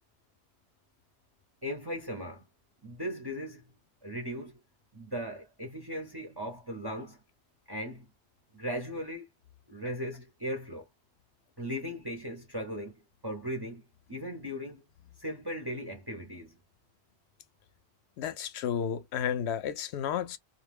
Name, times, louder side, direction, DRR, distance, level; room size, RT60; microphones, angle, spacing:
voice 1, 1.6-2.4 2.8-3.6 4.0-4.6 4.9-7.2 7.7-8.1 8.5-9.3 9.7-10.9 11.6-13.8 14.1-14.8 15.2-16.6, equal, 25° right, 0.7 m, -37 dB
voice 2, 18.2-20.4, left 8 dB, 75° left, 0.8 m, -32 dB
2.3 x 2.1 x 3.3 m
omnidirectional pair, 1.1 m